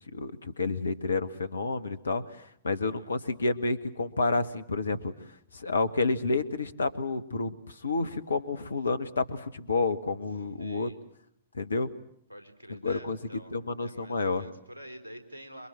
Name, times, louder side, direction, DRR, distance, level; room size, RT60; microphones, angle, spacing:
voice 1, 0.1-5.1 5.5-10.9 11.5-11.9 12.7-13.2 13.5-14.4, left 3 dB, 75° left, 13 dB, 1.7 m, -30 dB
voice 2, 2.7-3.2 10.6-11.0 12.3-15.7, equal, 80° right, 7 dB, 4.2 m, -48 dB
27.5 x 23.5 x 7.6 m, 0.70 s
figure-of-eight pair, 105°, 0 cm